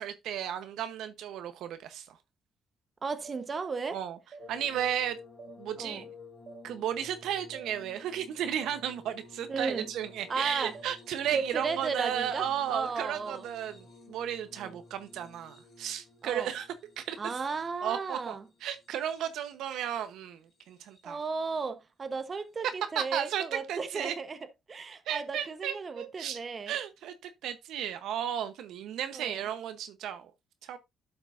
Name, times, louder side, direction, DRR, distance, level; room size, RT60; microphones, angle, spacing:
voice 1, 0.0-2.0 3.9-4.2 4.5-5.2 5.6-6.0 6.6-16.7 17.0-17.2 17.8-20.4 20.7-21.2 23.0-24.1 25.1-26.4 26.7-30.3 30.6-30.8, right 10 dB, 85° right, 0.9 m, -34 dB
voice 2, 3.0-4.0 5.8-6.1 9.5-9.9 10.3-10.7 11.3-13.5 14.6-14.8 16.2-16.5 17.2-18.4 21.0-24.4 24.7-26.7 29.1-29.4, right 4 dB, 35° right, 1.0 m, -35 dB
sound 1, 3.2-3.4 4.3-4.5 5.4-5.5 6.5-6.6 7.5-7.7 8.6-8.8 9.7-9.8 10.7-10.9, right 5 dB, 50° right, 2.3 m, -47 dB
sound 2, 4.4-19.6 20.5-21.2 22.6-22.8, left 3 dB, 55° left, 3.9 m, -53 dB
12.0 x 5.9 x 2.6 m
cardioid pair, 115°, 0 cm